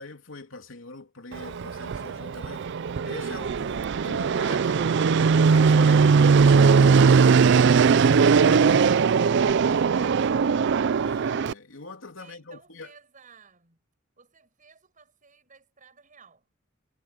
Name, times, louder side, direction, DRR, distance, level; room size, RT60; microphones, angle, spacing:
voice 1, 0.0-2.7 3.0-7.9 8.2-10.2 11.0-12.9, left 3 dB, 75° left, 3.1 m, -43 dB
Fixed-wing aircraft airplane, 1.3-11.5, right 5 dB, 60° right, 0.4 m, -20 dB
voice 2, 12.2-13.8 14.2-16.5, right 5 dB, 40° right, 6.6 m, -55 dB
head